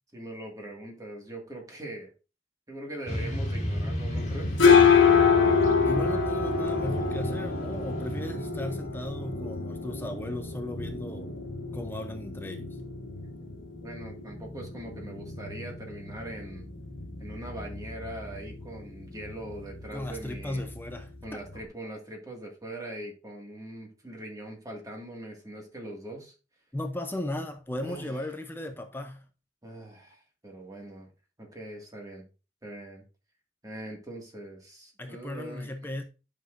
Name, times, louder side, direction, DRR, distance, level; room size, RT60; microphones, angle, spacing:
voice 1, 0.1-2.1 2.7-4.6 13.4-16.7 17.2-20.6 21.2-26.3 27.8-28.2 29.6-31.1 31.4-32.3 32.6-33.0 33.6-35.7, right 1 dB, 20° right, 1.9 m, -42 dB
Motorcycle / Traffic noise roadway noise, 3.1-8.3, equal, 35° left, 1.9 m, -34 dB
sound 1, 4.2-21.6, left 6 dB, 85° left, 1.5 m, -27 dB
voice 2, 5.8-11.4 11.7-12.8 19.9-21.4 26.7-29.2 35.0-36.0, left 1 dB, 10° left, 0.6 m, -36 dB
11.0 x 6.3 x 2.6 m
head